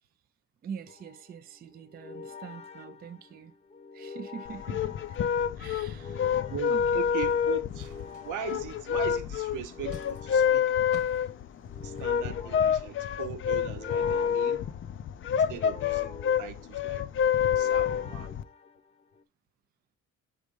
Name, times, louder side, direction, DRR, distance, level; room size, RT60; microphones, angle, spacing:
voice 1, 0.6-3.5 3.9-5.2 5.6-6.4 6.7-7.0, right 7 dB, 30° right, 0.4 m, -44 dB
sound 1, 0.9-19.2, left 5 dB, 20° left, 0.8 m, -47 dB
sound 2, 4.4-18.4, left 8 dB, 40° left, 0.4 m, -28 dB
voice 2, 6.4-10.8 11.8-14.7 15.3-17.1 17.5-18.3, right 9 dB, 70° right, 0.9 m, -40 dB
sound 3, 6.9-12.2, right 6 dB, 90° right, 1.5 m, -55 dB
4.9 x 4.2 x 5.0 m
cardioid pair, 120°, 31 cm